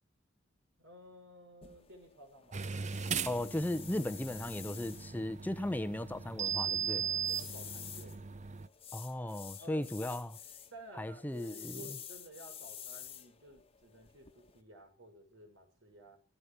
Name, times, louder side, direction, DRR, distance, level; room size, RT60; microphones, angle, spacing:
voice 1, 0.8-2.6 6.9-8.2 9.6-10.2 10.7-16.2, right 1 dB, 85° right, 6.2 m, -54 dB
sound 1, 1.6-14.6, left 9 dB, 30° left, 1.3 m, -51 dB
sound 2, 2.5-8.7, right 7 dB, 40° right, 0.7 m, -38 dB
voice 2, 3.3-7.0 8.9-10.3 11.0-11.8, left 1 dB, 10° left, 0.8 m, -36 dB
15.5 x 14.5 x 6.1 m
head